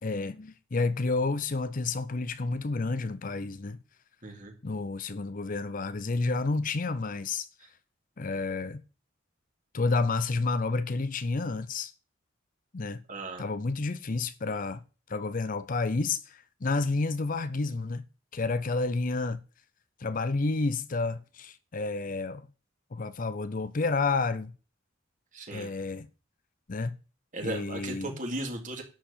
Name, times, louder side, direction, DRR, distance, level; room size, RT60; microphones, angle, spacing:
voice 1, 0.0-3.8 4.6-7.5 8.2-8.8 9.7-11.9 12.7-13.0 13.4-14.8 15.1-18.1 18.3-19.4 20.0-22.5 22.9-24.5 25.5-26.1 26.7-27.0 27.4-28.2, left 3 dB, 40° left, 0.6 m, -30 dB
voice 2, 4.2-4.5 13.1-13.5 25.3-25.7 27.3-28.8, right 2 dB, 40° right, 2.6 m, -36 dB
11.5 x 4.8 x 8.5 m
head